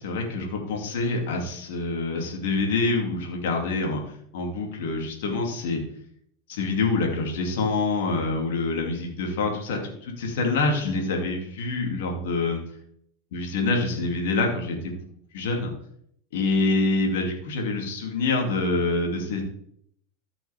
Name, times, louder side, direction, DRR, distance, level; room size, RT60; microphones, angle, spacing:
voice 1, 0.0-5.8 6.5-12.6 13.3-15.0 15.3-15.7 16.3-19.4, left 3 dB, 65° left, 1 dB, 2.7 m, -26 dB
14.0 x 6.1 x 3.6 m, 0.69 s
hypercardioid pair, 90°, 0 cm